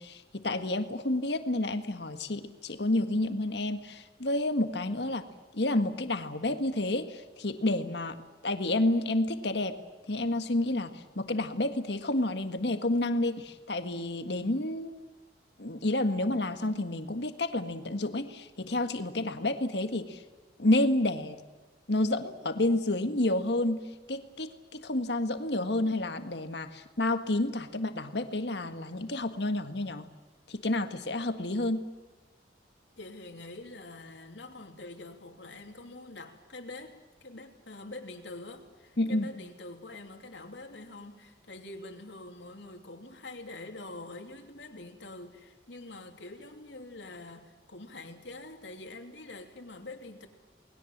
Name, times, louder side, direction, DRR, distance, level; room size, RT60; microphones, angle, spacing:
voice 1, 0.0-5.3 5.5-8.1 8.4-9.7 10.1-14.9 15.6-20.2 20.6-21.4 21.9-23.8 24.1-30.0 30.5-31.8 39.0-39.3, left 1 dB, 70° left, 1.7 m, -30 dB
voice 2, 33.0-50.3, left 2 dB, 85° left, 3.1 m, -45 dB
29.0 x 20.5 x 7.4 m
head